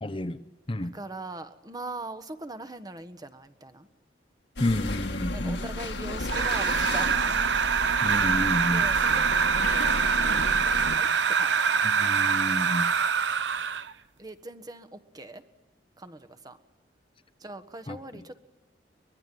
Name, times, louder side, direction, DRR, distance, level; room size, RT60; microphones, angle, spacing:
voice 1, 0.0-0.4 0.7-0.9 4.6-5.6 8.0-8.9 11.8-12.9 17.9-18.0, left 1 dB, 30° left, 0.9 m, -30 dB
voice 2, 0.8-3.9 5.3-7.4 8.7-11.1 11.4-11.9 14.2-15.4 16.0-16.6 17.4-18.4, right 2 dB, 20° right, 1.3 m, -41 dB
sound 1, 4.6-11.0, left 2 dB, 80° left, 2.1 m, -34 dB
sound 2, 6.3-13.9, right 6 dB, 85° right, 0.9 m, -24 dB
23.5 x 21.0 x 9.4 m
head